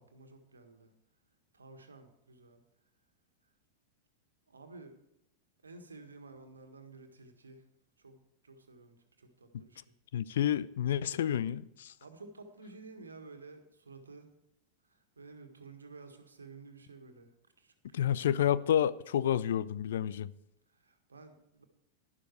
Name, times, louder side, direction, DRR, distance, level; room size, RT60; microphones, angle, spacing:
voice 1, 0.1-0.9 1.5-2.6 4.5-5.0 5.6-7.7 8.0-9.9 12.0-14.3 14.8-17.3 17.6-18.2 20.7-21.6, right 3 dB, 75° right, 6 dB, 1.6 m, -53 dB
voice 2, 10.1-11.9 17.9-20.3, left 10 dB, 60° left, 18 dB, 0.4 m, -29 dB
11.5 x 11.5 x 4.5 m, 0.83 s
figure-of-eight pair, 90°, 0 cm